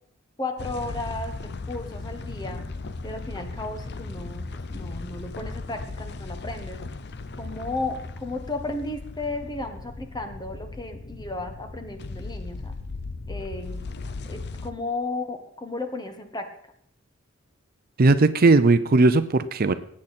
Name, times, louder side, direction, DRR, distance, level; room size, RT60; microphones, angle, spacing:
voice 1, 0.4-2.6 3.0-4.4 4.7-6.8 7.4-12.7 13.3-13.8 14.2-16.5, left 2 dB, 20° left, 6 dB, 1.4 m, -34 dB
sound 1, 0.6-14.7, left 3 dB, 55° left, 0.7 m, -37 dB
voice 2, 18.0-19.7, right 3 dB, 45° right, 12 dB, 0.6 m, -18 dB
18.5 x 8.7 x 4.2 m, 0.70 s
head